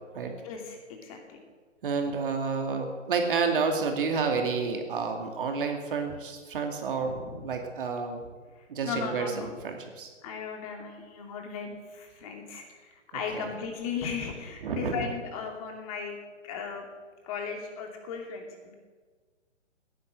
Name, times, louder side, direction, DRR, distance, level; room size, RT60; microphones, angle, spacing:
voice 1, 0.4-1.4 7.0-7.5 8.6-9.5 10.2-16.2 16.4-16.9 17.2-18.7, left 6 dB, 30° left, 3 dB, 2.7 m, -37 dB
voice 2, 1.8-8.2 8.7-10.1 13.1-13.6 14.6-15.1, right 5 dB, 45° right, 4 dB, 2.5 m, -30 dB
16.5 x 11.0 x 7.6 m, 1.4 s
figure-of-eight pair, 135°, 38 cm